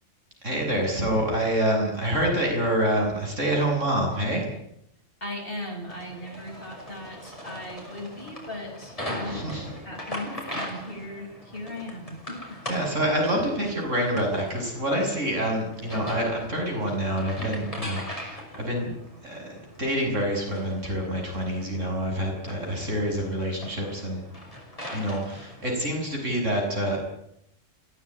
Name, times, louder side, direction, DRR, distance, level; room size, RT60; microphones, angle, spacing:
voice 1, 0.4-4.4 9.3-9.7 12.7-19.0 19.2-24.2 24.9-27.0, right 1 dB, 75° right, 1 dB, 7.5 m, -27 dB
voice 2, 5.2-12.6, left 1 dB, 45° left, 1 dB, 7.6 m, -38 dB
sound 1, 5.9-25.7, equal, 25° left, 6.0 m, -40 dB
23.5 x 16.5 x 9.9 m, 0.77 s
omnidirectional pair, 1.3 m